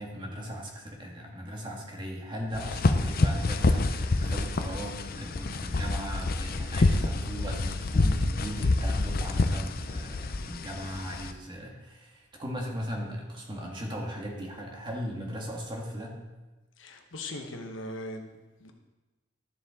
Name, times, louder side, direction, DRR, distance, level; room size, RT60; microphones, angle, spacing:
voice 1, 0.0-16.2, equal, 25° right, -1 dB, 1.7 m, -38 dB
sound 1, 2.5-11.3, left 2 dB, 50° left, 0.5 m, -27 dB
voice 2, 16.8-18.7, left 1 dB, 80° left, 4 dB, 1.1 m, -40 dB
12.5 x 7.2 x 3.7 m, 1.2 s
head